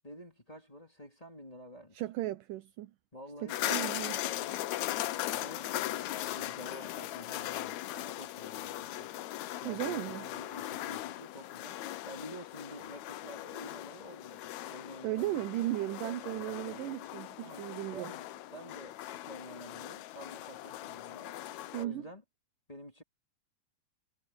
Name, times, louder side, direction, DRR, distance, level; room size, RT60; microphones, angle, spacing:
voice 1, 0.0-2.0 3.1-4.7 5.3-9.1 9.5-15.6 16.3-17.0 17.4-21.4 21.8-22.2 22.7-23.0, equal, 15° left, 1.8 m, -49 dB
voice 2, 1.9-2.9 3.4-4.2 9.6-10.3 15.0-18.1 21.7-22.0, right 15 dB, 75° right, 2.3 m, -36 dB
sound 1, 3.5-21.9, left 14 dB, 80° left, 1.6 m, -39 dB
omnidirectional pair, 4.2 m